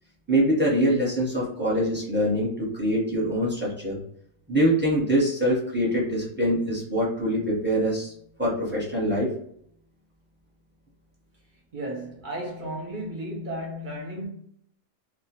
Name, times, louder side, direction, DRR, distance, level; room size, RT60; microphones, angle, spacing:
voice 1, 0.3-4.0 4.5-8.1 8.4-9.3, equal, 10° right, 0.7 m, -24 dB
voice 2, 11.7-14.3, right 1 dB, 50° right, 0.6 m, -34 dB
2.2 x 2.2 x 2.8 m
omnidirectional pair, 1.3 m